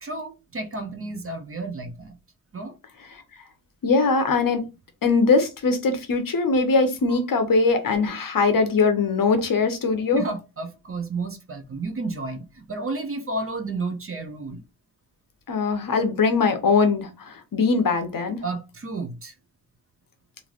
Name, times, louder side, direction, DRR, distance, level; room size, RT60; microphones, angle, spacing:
voice 1, 0.0-2.2 2.5-2.8 7.1-7.2 10.1-14.6 18.4-19.3, right 3 dB, 35° right, 0.6 m, -32 dB
voice 2, 3.8-4.6 5.0-10.2 15.5-17.1 17.5-18.4, left 4 dB, 55° left, 0.8 m, -21 dB
3.1 x 2.6 x 2.4 m
wide cardioid pair, 125°, 39 cm